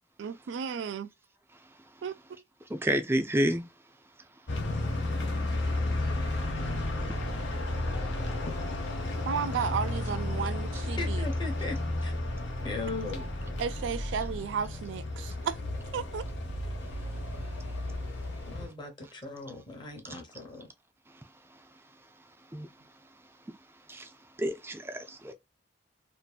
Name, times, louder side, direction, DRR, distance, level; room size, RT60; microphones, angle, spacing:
voice 1, 0.2-1.1 2.0-2.1 9.3-11.3 13.6-15.6 15.9-16.2, right 6 dB, 85° right, 0.3 m, -33 dB
voice 2, 2.7-3.7 22.5-22.7 23.9-24.1 24.4-25.3, right 1 dB, 15° right, 0.4 m, -29 dB
sound 1, 4.5-18.7, left 2 dB, 90° left, 0.8 m, -33 dB
voice 3, 11.0-12.1 12.6-13.3 18.5-20.7, left 3 dB, 25° left, 0.8 m, -38 dB
2.7 x 2.5 x 2.3 m
head